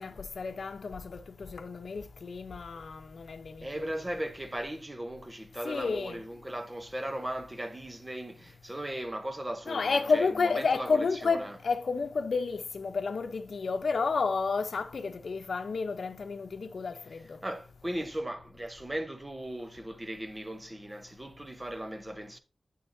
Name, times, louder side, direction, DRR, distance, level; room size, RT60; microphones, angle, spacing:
voice 1, 0.0-3.9 5.6-6.2 9.7-17.4, left 4 dB, 70° left, 0.8 m, -31 dB
voice 2, 3.6-11.6 17.4-22.4, right 1 dB, 20° right, 0.9 m, -37 dB
9.4 x 6.8 x 2.7 m
wide cardioid pair, 105°, 0 cm